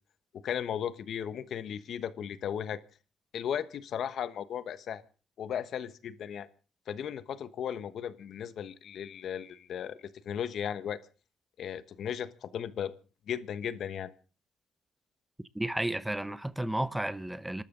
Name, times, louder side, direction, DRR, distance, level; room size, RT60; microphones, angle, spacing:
voice 1, 0.3-2.8 3.3-5.0 5.4-6.5 6.9-11.0 11.6-12.9 13.3-14.1, left 9 dB, 65° left, 1.1 m, -36 dB
voice 2, 15.5-17.6, right 1 dB, 5° right, 0.8 m, -32 dB
27.0 x 12.5 x 3.8 m
cardioid pair, 90°, 0 cm